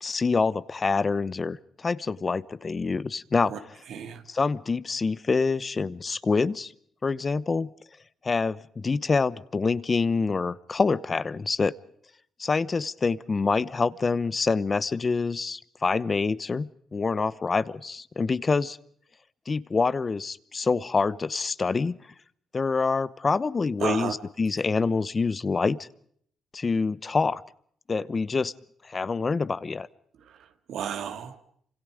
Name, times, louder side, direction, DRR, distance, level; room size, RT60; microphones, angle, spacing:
voice 1, 0.0-3.5 4.3-6.7 7.0-7.7 8.2-11.7 12.4-18.8 19.5-22.0 22.5-25.8 26.5-27.4 27.9-28.5 28.9-29.9, left 4 dB, 30° left, 17 dB, 0.9 m, -26 dB
voice 2, 3.9-4.2 23.8-24.1 30.2-31.5, right 8 dB, 75° right, 8 dB, 2.5 m, -33 dB
28.5 x 26.5 x 5.0 m, 0.64 s
cardioid pair, 90°, 0 cm